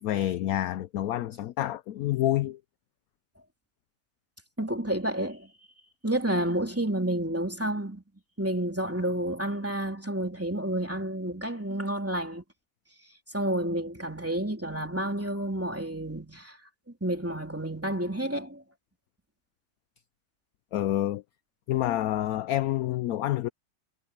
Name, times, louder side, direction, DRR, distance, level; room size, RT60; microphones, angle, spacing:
voice 1, 0.0-2.6 20.7-21.2 21.7-23.5, left 13 dB, 70° left, 0.9 m, -28 dB
voice 2, 4.6-5.5 6.0-8.0 8.4-12.4 13.3-16.6 17.0-18.6, right 1 dB, 10° right, 3.1 m, -30 dB
omnidirectional pair, 1.9 m